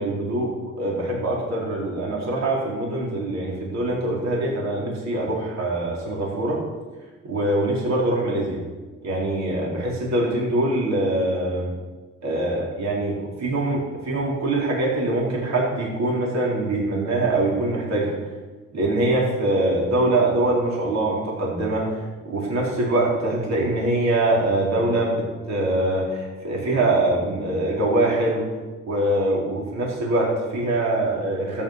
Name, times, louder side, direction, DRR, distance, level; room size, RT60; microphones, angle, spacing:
voice 1, 0.0-6.6 7.2-8.6 9.0-11.7 12.2-18.2 18.7-28.5 28.9-31.6, right 2 dB, 60° right, -4 dB, 4.4 m, -23 dB
13.0 x 9.4 x 6.1 m, 1.3 s
cardioid pair, 90°, 30 cm